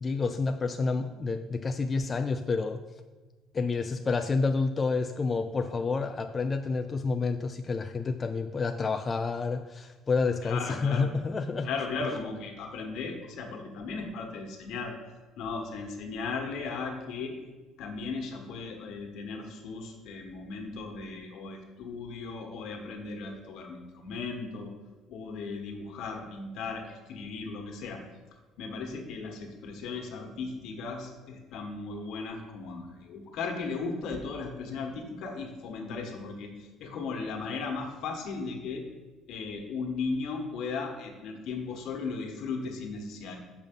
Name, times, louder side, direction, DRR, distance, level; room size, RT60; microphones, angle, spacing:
voice 1, 0.0-2.8 3.5-11.7, left 4 dB, 25° left, 7 dB, 0.3 m, -29 dB
voice 2, 10.4-11.1 11.6-15.0 15.4-17.3 17.8-24.7 25.1-28.0 28.6-38.8 39.3-43.4, left 4 dB, 65° left, 3 dB, 1.4 m, -36 dB
6.9 x 5.5 x 5.3 m, 1.3 s
cardioid pair, 130°, 0 cm